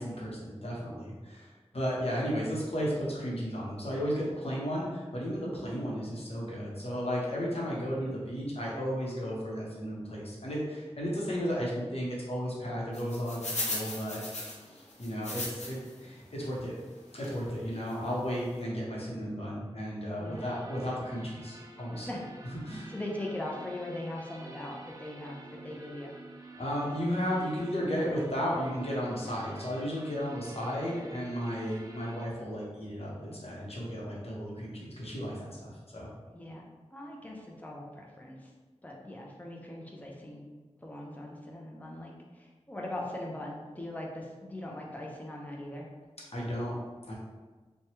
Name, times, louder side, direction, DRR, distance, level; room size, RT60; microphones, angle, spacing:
voice 1, 0.0-14.2 14.6-16.7 17.1-22.1 22.6-22.9 26.6-36.1 46.3-46.7 47.1-47.2, equal, 60° left, -6 dB, 0.9 m, -34 dB
sound 1, 12.9-15.9 16.4-16.5 17.2-17.4 17.9-18.0 18.2-18.4, left 2 dB, 85° left, 0.6 m, -37 dB
voice 2, 20.1-20.6 22.0-22.2 22.9-26.1 36.3-36.6 36.9-38.5 38.8-40.4 40.8-45.9, left 1 dB, 15° left, -2 dB, 0.6 m, -40 dB
sound 2, 20.2-32.2, right 2 dB, 30° right, 0.4 m, -49 dB
3.0 x 2.2 x 2.8 m, 1.3 s
wide cardioid pair, 45°, 11 cm